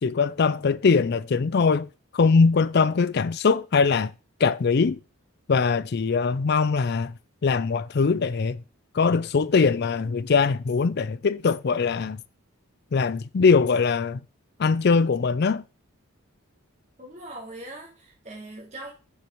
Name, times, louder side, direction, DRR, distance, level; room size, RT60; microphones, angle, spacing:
voice 1, 0.0-4.1 4.4-5.0 5.5-8.6 8.9-12.2 12.9-14.2 14.6-15.6, left 5 dB, 50° left, 0.4 m, -22 dB
voice 2, 17.0-18.9, right 1 dB, 35° right, 2.6 m, -41 dB
6.9 x 6.6 x 4.5 m
head